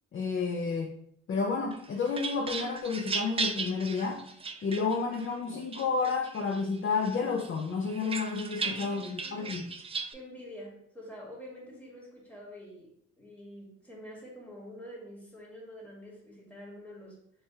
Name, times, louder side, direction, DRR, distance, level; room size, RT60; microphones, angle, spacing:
voice 1, 0.1-1.0 1.3-4.3 4.6-9.7, left 4 dB, 40° left, 0 dB, 0.5 m, -31 dB
sound 1, 1.7-5.3 5.7-6.6 7.0-10.1, right 4 dB, 20° right, 0.3 m, -36 dB
voice 2, 8.6-9.7 10.1-17.2, equal, 5° left, -3 dB, 1.5 m, -47 dB
3.3 x 2.3 x 4.1 m, 0.67 s
cardioid pair, 90°, 30 cm